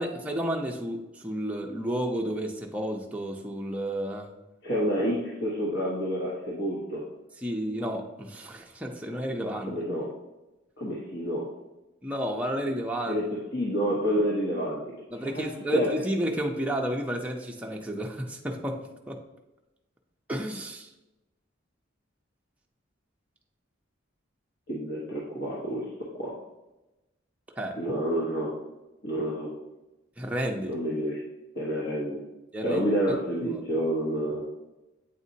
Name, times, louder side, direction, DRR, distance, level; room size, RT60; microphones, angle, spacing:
voice 1, 0.0-4.3 7.4-9.7 12.0-13.2 15.1-19.2 20.3-20.9 27.6-27.8 30.2-30.8 32.5-32.8 33.4-33.6, equal, 5° right, 0 dB, 0.6 m, -31 dB
voice 2, 4.6-7.0 9.6-10.1 10.8-11.5 13.0-14.8 15.2-15.4 15.7-15.9 24.7-26.3 27.8-28.5 29.0-29.5 30.7-31.2 31.5-32.2 32.6-34.4, equal, 60° left, -5 dB, 1.1 m, -29 dB
8.2 x 4.1 x 2.7 m, 1.0 s
head